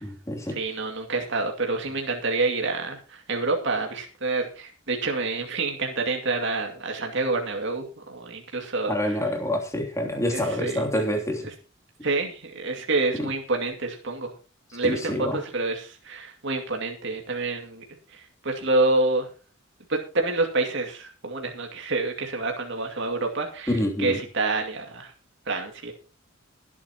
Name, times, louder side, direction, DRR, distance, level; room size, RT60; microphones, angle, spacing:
voice 1, 0.0-0.6 8.9-11.5 13.1-13.3 14.8-15.4 23.7-24.2, left 1 dB, 15° left, 2 dB, 2.9 m, -27 dB
voice 2, 0.6-9.2 10.3-10.8 12.0-14.3 14.7-17.8 18.1-19.3 19.9-23.7 24.0-25.1 25.5-25.9, right 3 dB, 65° right, 2 dB, 2.4 m, -27 dB
22.5 x 8.5 x 3.0 m, 0.34 s
head